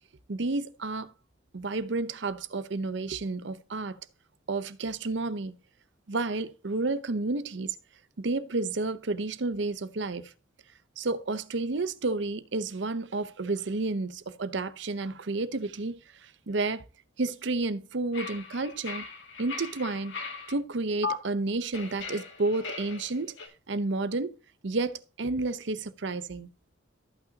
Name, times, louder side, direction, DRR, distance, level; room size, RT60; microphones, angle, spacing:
voice 1, 0.3-1.1 1.5-4.0 4.5-5.6 6.1-7.8 8.2-10.3 11.0-16.8 17.2-19.1 19.4-20.2 20.5-23.4 23.7-24.4 24.6-26.5, right 3 dB, 65° right, 0.7 m, -31 dB
sound 1, 18.1-20.5 21.0-21.1 21.7-23.5, left 4 dB, 70° left, 2.2 m, -38 dB
14.0 x 5.8 x 2.8 m
head